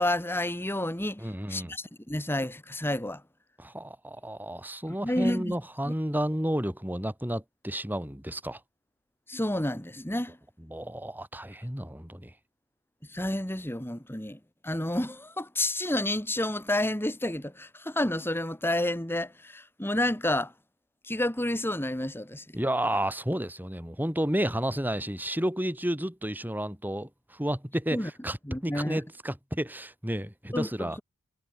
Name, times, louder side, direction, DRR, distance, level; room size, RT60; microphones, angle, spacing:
voice 1, 0.0-3.2 5.0-5.5 5.8-5.9 9.3-10.4 13.1-20.5 21.0-22.4 27.9-28.1 28.4-29.0 30.5-31.0, left 1 dB, 10° left, 2.7 m, -30 dB
voice 2, 1.2-1.7 3.6-8.6 10.7-12.3 22.5-28.4 28.6-31.0, right 1 dB, 10° right, 6.1 m, -31 dB
head